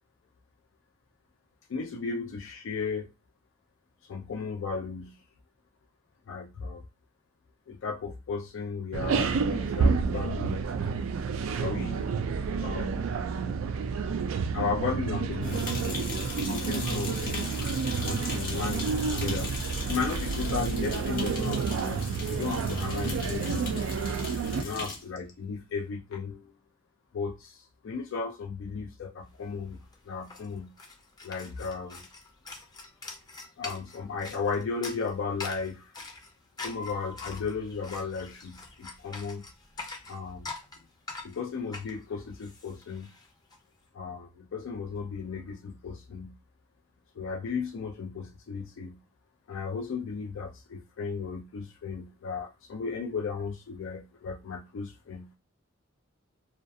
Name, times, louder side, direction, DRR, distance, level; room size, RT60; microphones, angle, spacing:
voice 1, 1.7-3.1 4.1-5.2 6.3-6.8 7.7-10.7 11.6-12.1 12.5-13.1 14.3-17.6 18.0-19.5 19.9-23.9 24.4-26.5 27.1-29.8 30.1-30.7 31.2-32.1 33.6-35.9 36.6-39.4 40.1-40.5 41.2-43.1 43.9-46.3 47.2-49.0 49.5-55.3, left 5 dB, 70° left, 0.4 m, -35 dB
sound 1, 8.9-24.6, right 5 dB, 85° right, 0.3 m, -30 dB
sound 2, 15.4-25.1, left 2 dB, 45° left, 1.0 m, -38 dB
sound 3, 29.4-29.5 29.7-43.6, left 3 dB, 20° left, 0.5 m, -44 dB
2.3 x 2.1 x 2.6 m
head